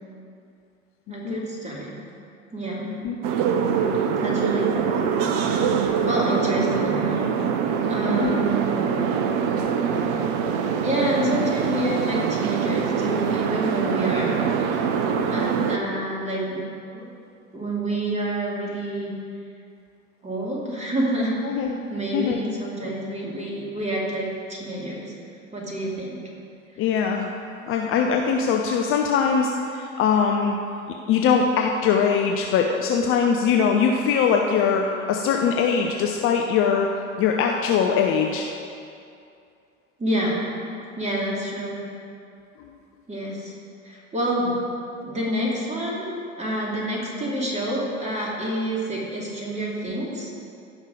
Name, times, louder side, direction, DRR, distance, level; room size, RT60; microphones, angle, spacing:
voice 1, 1.1-2.0 2.5-3.0 4.2-5.1 6.0-7.3 7.9-8.8 10.8-14.5 15.3-16.7 16.9-17.1 17.5-19.1 20.2-21.4 21.9-25.1 25.5-26.2 40.0-40.4 41.0-41.8 43.1-43.5 43.8-44.7 45.0-46.1 46.4-50.4, right 1 dB, 15° right, -3 dB, 2.8 m, -28 dB
sound 1, 3.2-15.8, right 6 dB, 45° right, 0.9 m, -24 dB
voice 2, 8.1-8.4 15.3-15.4 21.4-21.8 22.1-22.4 25.9-26.0 26.8-27.3 27.7-30.6 31.1-36.9 37.2-38.5, left 6 dB, 35° left, 2 dB, 0.7 m, -22 dB
16.0 x 5.5 x 5.0 m, 2.5 s
figure-of-eight pair, 75°, 38 cm